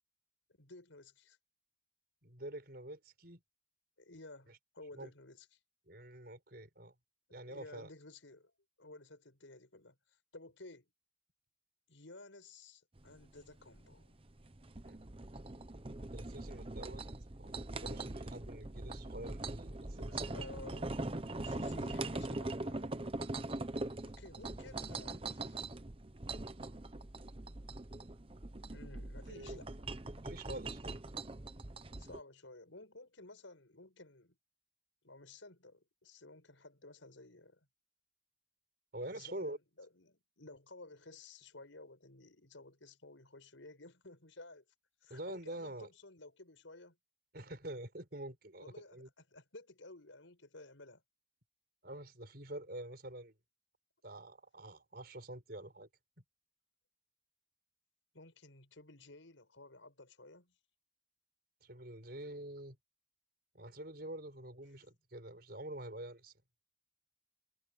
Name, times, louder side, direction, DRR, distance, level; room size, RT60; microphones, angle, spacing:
voice 1, 0.6-1.4 4.0-5.6 7.4-8.5 8.8-10.9 11.9-14.2 20.1-21.0 21.4-23.0 24.0-25.6 28.7-29.7 32.0-34.4 35.0-37.7 39.1-44.6 45.0-47.0 48.6-51.0 58.1-60.5, left 2 dB, 85° left, 6.2 m, -55 dB
voice 2, 2.2-3.4 4.9-5.1 5.9-6.9 7.3-7.9 14.8-15.1 16.1-20.5 29.3-29.6 30.2-31.0 38.9-39.6 45.1-45.9 47.3-49.1 51.8-53.3 54.0-55.9 61.6-62.8 63.5-66.3, right 1 dB, 55° right, 5.9 m, -47 dB
sound 1, 13.0-32.2, right 2 dB, 30° right, 0.9 m, -42 dB
head